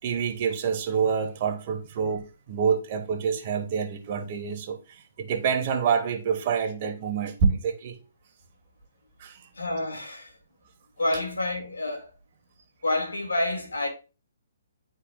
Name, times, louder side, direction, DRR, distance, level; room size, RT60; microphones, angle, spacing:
voice 1, 0.0-8.0 9.2-9.5, right 6 dB, 45° right, 1.4 m, -27 dB
voice 2, 9.5-10.4 11.0-12.1 12.8-13.9, left 1 dB, 90° left, 2.0 m, -28 dB
10.5 x 4.5 x 2.3 m
hypercardioid pair, 140°, 0 cm